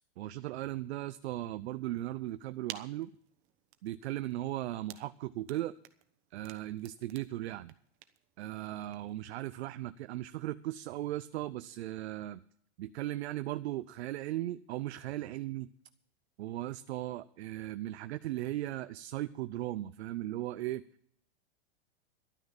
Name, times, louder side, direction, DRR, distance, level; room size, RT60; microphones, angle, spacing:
voice 1, 0.2-3.1 3.8-5.7 6.3-7.7 8.4-12.4 12.8-15.7 16.4-20.8, right 15 dB, 75° right, 14 dB, 0.6 m, -37 dB
sound 1, 2.2-9.3, right 13 dB, 40° right, 1.1 m, -53 dB
12.0 x 9.4 x 7.1 m, 0.67 s
hypercardioid pair, 115°, 33 cm